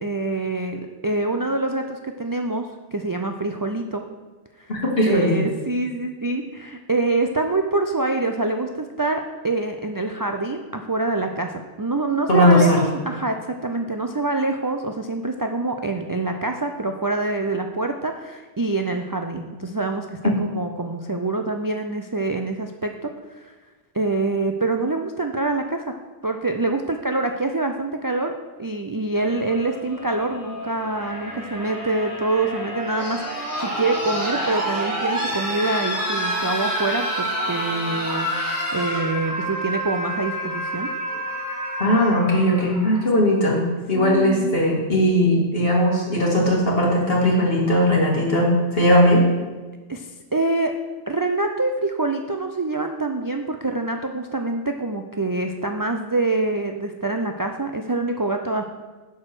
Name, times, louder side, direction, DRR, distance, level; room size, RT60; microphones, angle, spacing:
voice 1, 0.0-4.0 5.1-8.7 9.0-23.5 23.9-25.8 26.2-28.3 28.6-40.9 43.9-44.6 49.9-50.7 51.1-58.6, right 2 dB, 35° right, 4 dB, 0.3 m, -25 dB
voice 2, 4.7-5.4 12.3-12.8 41.8-43.6 43.9-49.2, equal, 60° left, -3 dB, 2.5 m, -18 dB
sound 1, 29.2-43.2 44.4-44.5, equal, 5° right, 3.1 m, -28 dB
11.0 x 4.7 x 6.0 m, 1.3 s
omnidirectional pair, 1.1 m